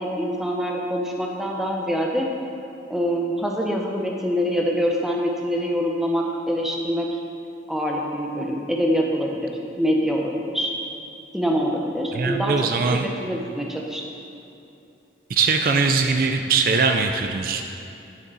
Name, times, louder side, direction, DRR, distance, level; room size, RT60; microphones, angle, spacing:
voice 1, 0.0-2.3 2.9-7.2 7.7-10.7 11.3-12.6 12.9-14.0, equal, ahead, -1 dB, 0.7 m, -25 dB
voice 2, 12.1-13.1 15.3-17.8, right 4 dB, 50° right, 5 dB, 0.4 m, -21 dB
9.2 x 6.5 x 4.0 m, 2.8 s
head